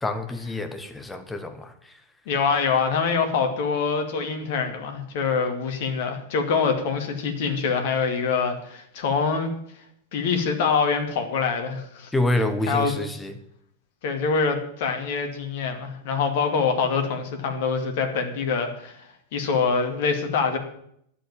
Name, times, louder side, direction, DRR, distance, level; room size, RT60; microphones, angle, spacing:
voice 1, 0.0-1.7 12.1-13.3, left 2 dB, 10° left, 7 dB, 1.7 m, -27 dB
voice 2, 2.3-9.5 10.1-12.1 12.7-12.9 14.0-19.1 19.3-20.6, left 5 dB, 50° left, 5 dB, 2.4 m, -25 dB
11.5 x 8.2 x 8.9 m, 0.68 s
figure-of-eight pair, 90°, 0 cm